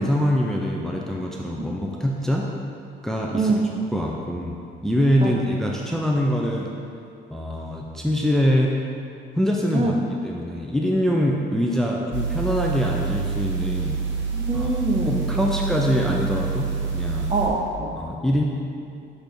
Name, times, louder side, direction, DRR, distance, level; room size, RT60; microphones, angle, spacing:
voice 1, 0.0-2.5 3.0-3.5 3.9-4.6 4.8-6.7 7.3-8.7 9.3-9.9 10.2-14.0 14.5-14.7 15.1-17.3 18.0-18.4, equal, ahead, -1 dB, 0.6 m, -24 dB
sound 1, 12.1-17.5, right 5 dB, 70° right, 1.1 m, -27 dB
voice 2, 14.3-15.8 17.3-18.0, right 2 dB, 30° right, 1 dB, 0.9 m, -25 dB
6.6 x 3.4 x 6.0 m, 2.5 s
cardioid pair, 90°, 20 cm